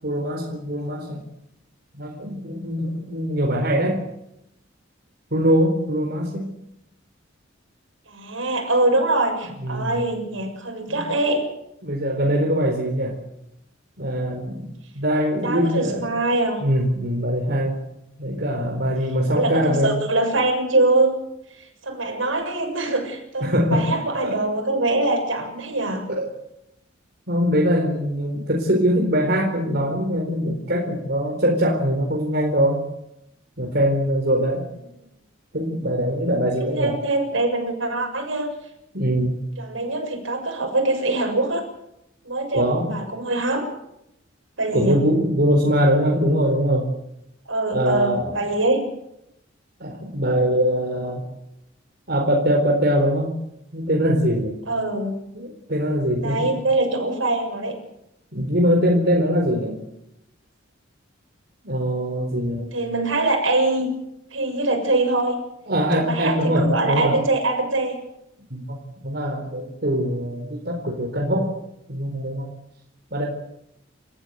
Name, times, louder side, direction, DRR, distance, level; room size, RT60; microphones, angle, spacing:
voice 1, 0.0-1.2 1.9-4.0 5.3-6.5 9.4-10.1 10.9-11.2 11.8-13.2 14.0-14.7 14.9-16.1 16.6-17.8 18.2-19.9 23.4-23.9 24.2-24.4 26.2-26.3 27.3-32.8 33.6-34.6 35.5-36.9 38.9-39.4 42.5-42.9 44.7-46.9 47.7-48.3 49.8-51.2 52.1-53.3 53.7-54.5 55.3-56.5 58.3-59.8 61.6-62.6 65.6-67.1 68.5-68.8 69.0-71.5 71.9-72.5 73.1-73.3, equal, 55° right, 0 dB, 4.3 m, -22 dB
voice 2, 8.1-11.5 15.4-16.6 19.3-21.2 21.8-26.1 36.8-38.5 39.6-41.6 42.2-43.6 44.6-45.0 47.5-48.8 54.7-55.1 56.2-57.8 62.6-64.0 64.3-65.4 65.9-68.0, right 2 dB, 80° right, 3 dB, 7.1 m, -23 dB
28.5 x 15.0 x 8.1 m, 0.84 s
head